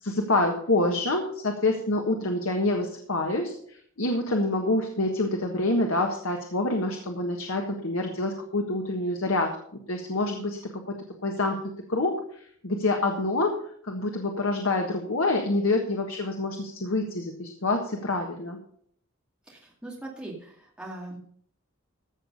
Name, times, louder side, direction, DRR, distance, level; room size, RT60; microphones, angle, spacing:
voice 1, 0.0-9.6 9.9-11.0 11.2-11.6 11.9-13.6 13.8-18.6, left 2 dB, 80° left, 2 dB, 1.5 m, -27 dB
voice 2, 19.5-21.2, right 2 dB, 5° right, -3 dB, 2.3 m, -40 dB
14.5 x 6.8 x 5.4 m, 0.62 s
head